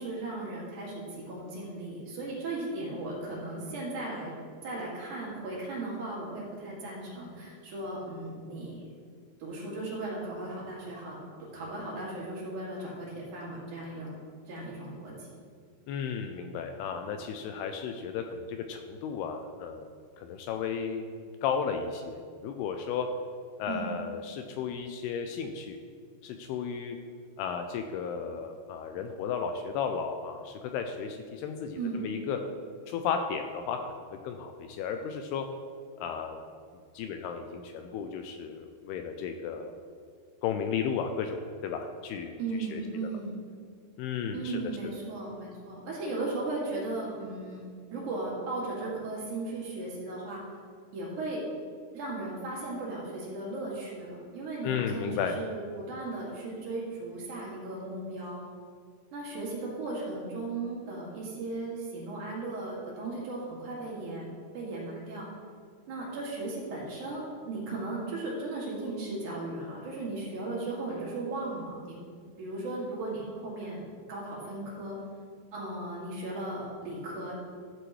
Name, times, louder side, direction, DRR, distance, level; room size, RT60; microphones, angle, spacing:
voice 1, 0.0-4.3 4.6-8.9 9.4-14.1 14.5-15.3 23.7-23.9 31.8-32.0 42.4-43.4 44.3-50.4 50.9-51.4 51.9-55.1 55.4-58.4 59.1-64.2 64.5-65.3 65.9-72.0 72.4-75.0 75.5-77.3, right 2 dB, 55° right, -5 dB, 3.2 m, -36 dB
voice 2, 15.9-19.9 20.2-23.1 23.6-25.8 26.2-27.0 27.4-32.4 32.9-33.8 34.2-35.5 36.0-36.5 36.9-39.8 40.4-41.4 41.6-42.4 42.7-43.1 44.0-44.6 54.6-55.4, left 6 dB, 85° left, 5 dB, 2.4 m, -34 dB
12.5 x 7.6 x 3.1 m, 2.1 s
omnidirectional pair, 4.8 m